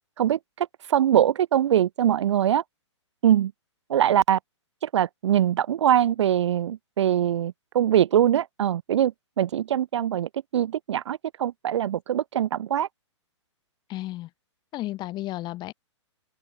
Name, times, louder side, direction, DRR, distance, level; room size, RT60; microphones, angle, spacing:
voice 1, 0.2-2.6 3.2-3.5 3.9-4.4 4.8-12.9, right 10 dB, 65° right, 0.4 m, -23 dB
voice 2, 13.9-14.3 14.7-15.7, left 16 dB, 30° left, 2.7 m, -33 dB
open air
hypercardioid pair, 120°, 16 cm